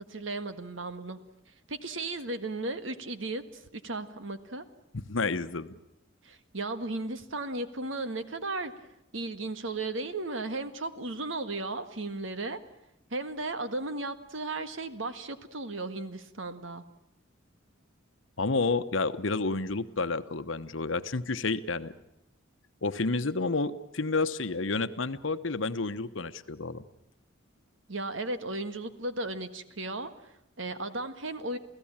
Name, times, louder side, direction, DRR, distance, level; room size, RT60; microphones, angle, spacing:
voice 1, 0.1-1.2 1.7-4.6 6.2-8.7 9.1-12.6 13.1-16.8 27.9-31.6, right 2 dB, 70° right, 10 dB, 1.7 m, -35 dB
voice 2, 4.9-5.8 18.4-21.9 22.8-26.8, left 3 dB, 70° left, 12 dB, 1.1 m, -30 dB
28.5 x 16.5 x 8.9 m, 0.87 s
head